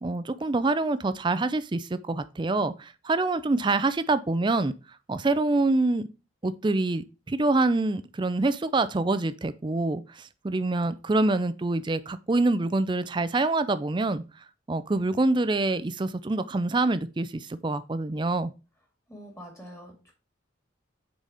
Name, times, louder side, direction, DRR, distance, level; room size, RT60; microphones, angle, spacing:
voice 1, 0.0-4.7 5.1-6.1 6.4-14.2 14.7-18.5, right 2 dB, 25° right, 0.4 m, -26 dB
voice 2, 19.1-20.1, equal, 15° left, 2.1 m, -45 dB
6.5 x 4.1 x 4.9 m
head